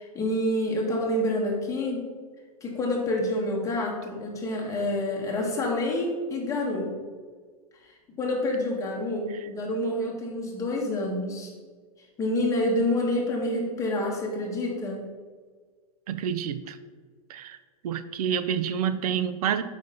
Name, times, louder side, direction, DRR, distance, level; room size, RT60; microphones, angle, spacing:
voice 1, 0.0-2.1 2.6-6.9 7.8-11.5 12.2-15.0, left 1 dB, 15° left, -2 dB, 1.5 m, -28 dB
voice 2, 16.1-16.8 17.3-17.6 17.8-19.6, right 8 dB, 75° right, 12 dB, 0.6 m, -28 dB
5.1 x 3.9 x 5.6 m, 1.5 s
hypercardioid pair, 135°, 19 cm